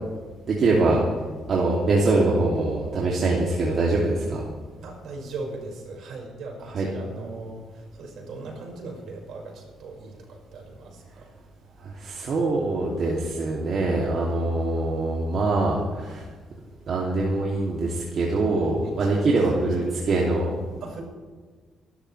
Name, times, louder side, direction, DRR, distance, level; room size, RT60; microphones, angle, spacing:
voice 1, 0.5-1.0 1.5-4.4 6.7-6.9 11.8-16.3 16.9-20.5, right 2 dB, 55° right, -3 dB, 2.7 m, -23 dB
voice 2, 4.8-11.3 18.8-20.1 20.8-21.0, right 3 dB, 75° right, 0 dB, 5.4 m, -39 dB
26.5 x 12.5 x 3.4 m, 1.4 s
cardioid pair, 90°, 0 cm